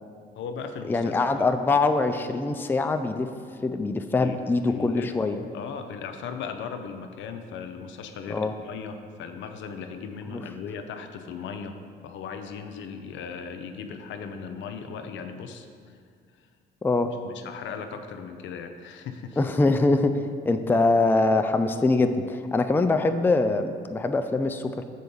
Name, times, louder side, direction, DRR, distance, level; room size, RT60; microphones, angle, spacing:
voice 1, 0.3-1.5 4.2-5.1 5.5-11.8 12.0-16.0 17.2-19.4, left 6 dB, 70° left, 7 dB, 0.6 m, -37 dB
voice 2, 0.9-3.3 3.6-5.4 8.3-8.5 10.3-10.4 16.8-17.1 19.4-24.8, left 3 dB, 10° left, 7 dB, 0.4 m, -23 dB
6.4 x 4.5 x 5.4 m, 2.2 s
supercardioid pair, 70°, 20 cm